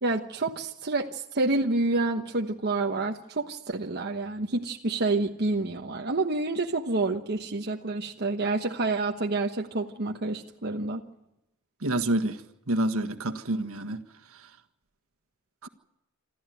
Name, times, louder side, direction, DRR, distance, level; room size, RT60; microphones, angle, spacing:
voice 1, 0.0-11.0, right 3 dB, 50° right, 2 dB, 1.1 m, -28 dB
voice 2, 11.8-12.4 12.7-14.0 15.6-15.7, right 1 dB, 70° right, 6 dB, 1.6 m, -27 dB
27.0 x 13.0 x 9.3 m, 0.88 s
head